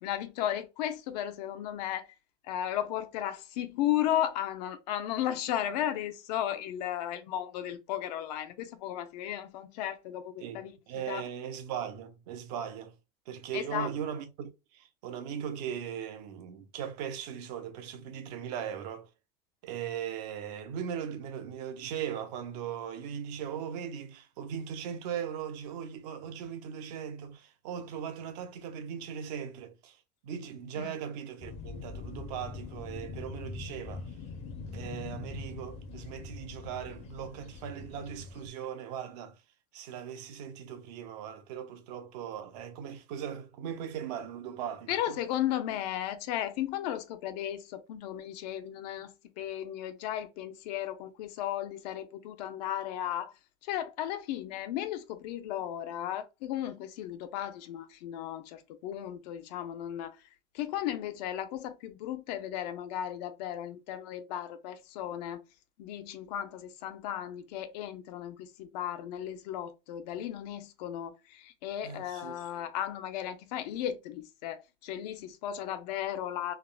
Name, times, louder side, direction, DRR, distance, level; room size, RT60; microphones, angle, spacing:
voice 1, 0.0-2.1 2.4-10.7 11.1-11.2 13.5-13.9 30.8-30.9 44.9-49.1 49.4-53.3 53.6-60.2 60.5-65.4 65.8-76.5, left 11 dB, 70° left, 0.6 m, -35 dB
voice 2, 10.4-13.0 13.3-19.1 19.6-34.1 34.7-39.4 39.7-45.2 71.8-72.4, right 8 dB, 70° right, 0.8 m, -39 dB
sound 1, 31.4-38.5, left 4 dB, 30° left, 0.6 m, -43 dB
3.5 x 2.1 x 2.2 m
cardioid pair, 165°, 21 cm